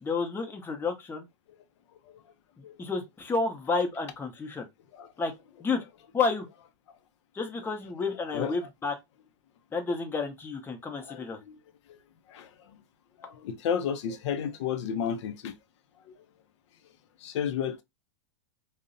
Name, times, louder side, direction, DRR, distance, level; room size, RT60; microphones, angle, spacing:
voice 1, 0.0-1.2 2.8-4.7 5.2-5.3 5.6-5.8 6.1-6.5 7.3-8.9 9.7-11.4, left 4 dB, 15° left, 0.6 m, -30 dB
voice 2, 11.1-11.6 12.3-12.5 13.2-15.5 17.2-17.8, left 8 dB, 70° left, 0.4 m, -32 dB
2.6 x 2.0 x 2.4 m
hypercardioid pair, 120°, 16 cm